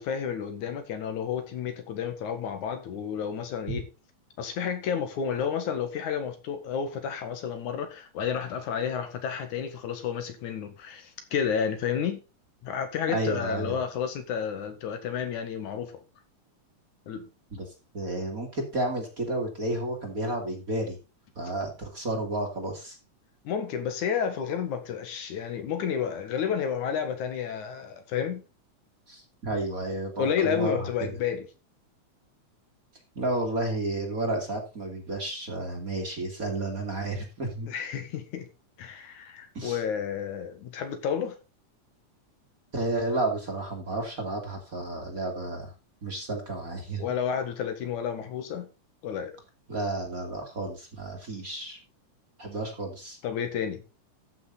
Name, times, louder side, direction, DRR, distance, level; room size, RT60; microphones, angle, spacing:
voice 1, 0.0-3.8 4.4-12.2 12.6-15.9 17.1-17.2 23.4-28.4 30.2-31.5 37.7-38.5 38.8-41.4 47.0-48.7 49.0-49.3 53.2-53.8, left 7 dB, 75° left, 3.0 m, -31 dB
voice 2, 13.1-13.8 17.5-17.7 17.9-21.0 21.4-23.0 29.1-30.9 33.2-37.7 39.5-39.8 42.7-45.7 46.0-47.0 49.7-51.8 52.4-53.2, right 2 dB, 30° right, 2.5 m, -31 dB
14.0 x 6.4 x 4.0 m
omnidirectional pair, 3.5 m